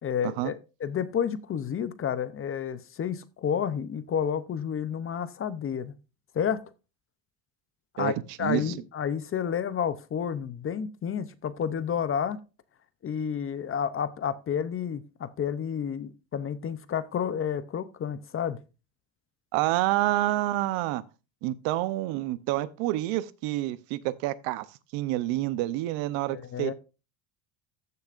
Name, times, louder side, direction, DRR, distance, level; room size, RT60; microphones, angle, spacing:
voice 1, 0.0-5.9 6.3-6.6 7.9-12.4 13.0-18.6 26.3-26.7, left 8 dB, 30° left, 0.6 m, -30 dB
voice 2, 8.4-8.7 19.5-21.0 21.4-24.7 24.9-26.7, right 16 dB, 90° right, 0.8 m, -28 dB
14.5 x 6.8 x 2.5 m
cardioid pair, 135°, 45 cm